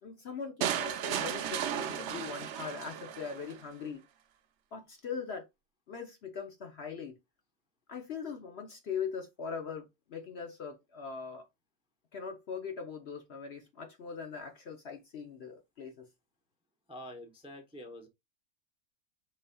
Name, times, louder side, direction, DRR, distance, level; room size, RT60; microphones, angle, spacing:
voice 1, 0.0-4.0 4.7-5.4 5.9-7.2 7.9-11.4 12.1-16.1, left 6 dB, 55° left, 0.8 m, -41 dB
sound 1, 0.6-3.6, right 9 dB, 65° right, 0.7 m, -35 dB
voice 2, 16.9-18.1, left 1 dB, 5° right, 0.5 m, -46 dB
5.4 x 4.0 x 2.2 m
omnidirectional pair, 1.6 m